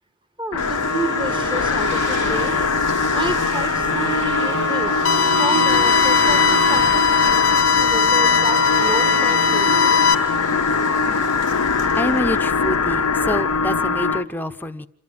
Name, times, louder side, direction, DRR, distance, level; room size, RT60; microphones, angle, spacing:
voice 1, 0.4-2.6 3.1-5.0 5.4-10.0, right 2 dB, 20° right, 8 dB, 1.7 m, -30 dB
sound 1, 0.5-14.2, left 5 dB, 90° left, 0.9 m, -22 dB
sound 2, 0.6-13.6, right 3 dB, 60° right, 2.0 m, -30 dB
sound 3, 5.0-10.1, left 5 dB, 65° left, 0.9 m, -18 dB
voice 2, 11.9-14.9, left 1 dB, 10° left, 7 dB, 0.9 m, -26 dB
27.5 x 12.5 x 9.6 m, 0.69 s
head